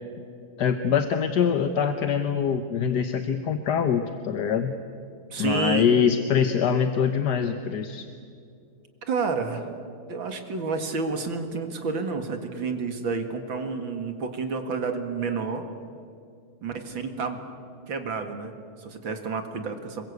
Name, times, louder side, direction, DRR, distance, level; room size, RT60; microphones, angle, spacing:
voice 1, 0.6-4.7 5.4-8.1, left 7 dB, 55° left, 8 dB, 1.4 m, -24 dB
voice 2, 5.3-5.9 9.1-9.7 10.1-15.7 16.6-17.4 17.9-20.0, right 4 dB, 60° right, 6 dB, 2.6 m, -30 dB
26.5 x 22.5 x 8.3 m, 2.4 s
omnidirectional pair, 2.4 m